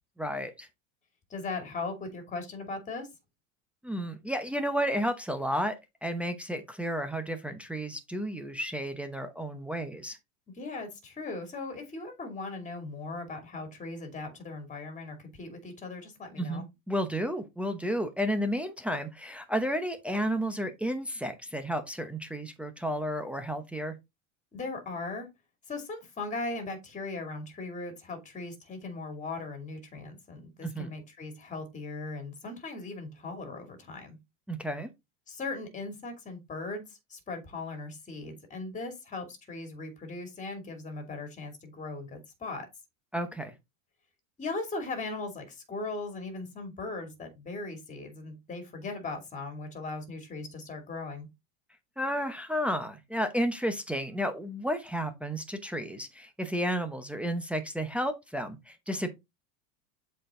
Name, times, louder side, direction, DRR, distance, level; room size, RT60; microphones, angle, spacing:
voice 1, 0.2-0.7 3.8-5.7 6.0-10.2 16.4-23.9 30.6-30.9 34.5-34.9 43.1-43.5 52.0-59.1, equal, 5° right, 0.8 m, -32 dB
voice 2, 1.3-3.1 10.5-16.6 24.5-25.3 25.7-34.2 35.3-42.7 44.4-51.3, left 3 dB, 20° left, 2.5 m, -38 dB
7.5 x 4.5 x 3.7 m
supercardioid pair, 135°, 41 cm